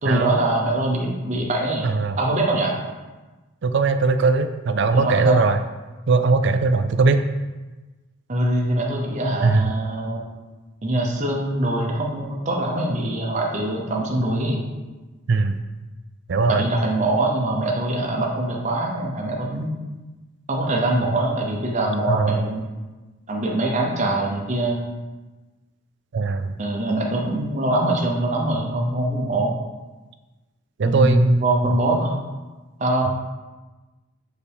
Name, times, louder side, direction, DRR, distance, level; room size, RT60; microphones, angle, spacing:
voice 1, 0.0-1.9 2.2-2.7 4.9-5.4 8.3-10.2 10.8-14.6 16.5-19.7 20.5-22.7 23.3-24.9 26.6-29.5 30.8-32.2 32.8-33.2, right 1 dB, 35° right, -1 dB, 0.7 m, -23 dB
voice 2, 1.8-2.2 3.6-5.6 6.1-7.2 9.4-9.7 15.3-15.6 16.3-16.6 22.1-22.5 26.1-26.6 30.8-31.8, right 3 dB, 55° right, 9 dB, 0.4 m, -20 dB
6.9 x 4.0 x 3.5 m, 1.2 s
head